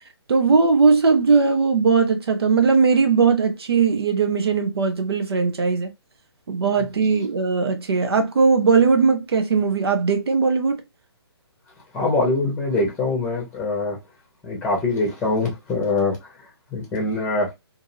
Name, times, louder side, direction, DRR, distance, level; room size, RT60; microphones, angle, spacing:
voice 1, 0.3-5.9 6.5-10.8, right 5 dB, 65° right, 0.6 m, -19 dB
voice 2, 11.9-14.0 14.4-17.5, left 3 dB, 10° left, 0.8 m, -24 dB
2.7 x 2.6 x 2.6 m
figure-of-eight pair, 140°, 14 cm